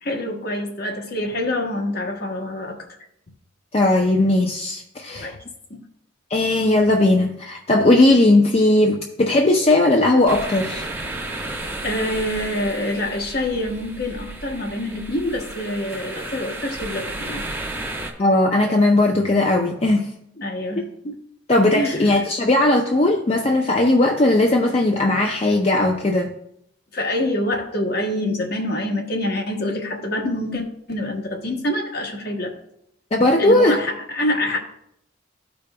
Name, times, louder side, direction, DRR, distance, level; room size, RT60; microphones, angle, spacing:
voice 1, 0.0-3.0 5.1-5.4 5.7-5.8 11.8-17.4 20.4-21.2 21.7-22.2 26.9-32.5 33.4-34.6, left 1 dB, 50° left, 2 dB, 1.0 m, -26 dB
voice 2, 3.7-5.3 6.3-10.9 18.2-20.1 20.8-20.9 21.5-26.3 33.1-33.7, left 2 dB, 30° left, 2 dB, 0.5 m, -18 dB
sound 1, 10.3-18.1, right 2 dB, 10° right, 0.9 m, -33 dB
13.5 x 5.1 x 2.2 m, 0.73 s
head